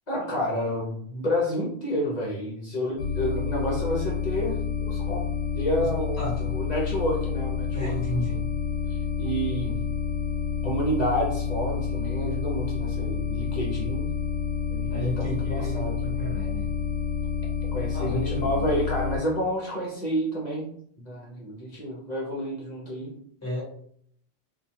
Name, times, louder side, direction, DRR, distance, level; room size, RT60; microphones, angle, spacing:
voice 1, 0.1-4.6 4.9-5.3 5.5-8.2 8.9-9.8 10.6-14.1 14.7-16.0 17.7-20.7 21.0-23.1, equal, 45° left, -3 dB, 0.7 m, -29 dB
sound 1, 3.0-19.2, left 6 dB, 75° left, 0.8 m, -29 dB
voice 2, 6.2-6.6 7.7-8.5 14.9-16.7 17.9-18.7 23.4-23.6, left 1 dB, 15° left, -5 dB, 1.0 m, -32 dB
2.3 x 2.2 x 2.7 m, 0.63 s
omnidirectional pair, 1.1 m